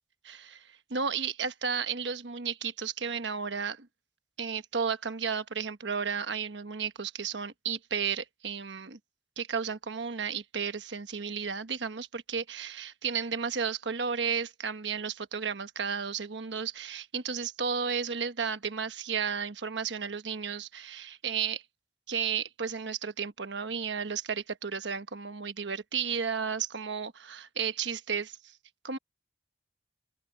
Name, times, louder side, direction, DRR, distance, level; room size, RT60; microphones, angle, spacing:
voice 1, 0.2-3.9 4.4-9.0 9.4-21.6 22.1-28.5 28.8-29.0, right 6 dB, 90° right, 1.2 m, -33 dB
open air
head